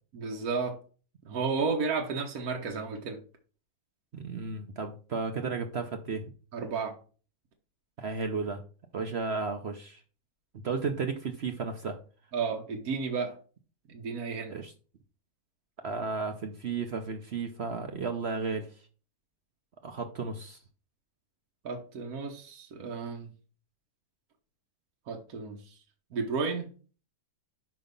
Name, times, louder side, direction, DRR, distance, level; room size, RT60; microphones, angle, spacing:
voice 1, 0.1-0.8 1.2-3.2 6.5-7.0 12.3-13.4 13.9-14.5 21.6-23.3 25.1-25.8 26.1-26.7, right 4 dB, 70° right, 2 dB, 1.5 m, -32 dB
voice 2, 4.1-6.3 8.0-8.6 8.9-10.0 10.6-12.0 14.5-14.7 15.8-18.7 19.8-20.6, right 4 dB, 50° right, 6 dB, 0.9 m, -33 dB
5.8 x 5.4 x 5.2 m, 0.38 s
omnidirectional pair, 1.6 m